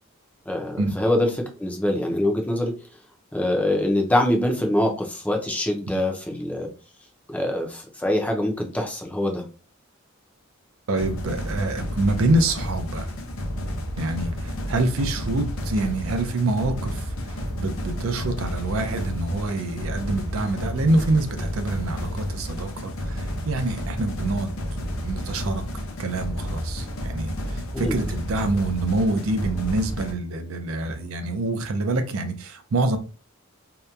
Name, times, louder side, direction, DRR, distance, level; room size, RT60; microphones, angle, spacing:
voice 1, 0.5-2.7 3.3-6.7 7.3-9.4 27.7-28.0, left 1 dB, 5° left, 0.4 m, -24 dB
voice 2, 10.9-13.1 14.0-24.5 25.0-25.6 26.0-33.0, right 2 dB, 75° right, 0.5 m, -26 dB
sound 1, 11.0-30.1, equal, 70° left, 0.6 m, -31 dB
2.8 x 2.2 x 2.3 m
head